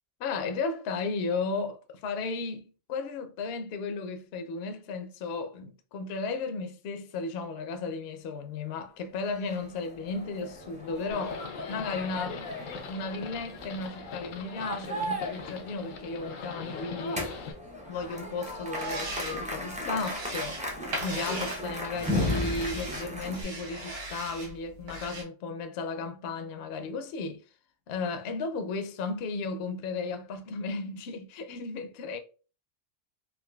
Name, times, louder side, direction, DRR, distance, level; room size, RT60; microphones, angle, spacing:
voice 1, 0.2-11.4 11.7-12.5 12.9-17.3 17.9-20.6 21.0-27.4 27.9-32.2, left 4 dB, 65° left, 0.7 m, -34 dB
sound 1, 9.3-23.4, left 1 dB, 10° right, 0.3 m, -36 dB
Livestock farm animals working animals, 11.1-17.5, left 5 dB, 85° left, 1.0 m, -41 dB
sound 2, 18.5-25.2, right 1 dB, 65° right, 1.1 m, -39 dB
3.7 x 2.6 x 2.2 m
omnidirectional pair, 1.3 m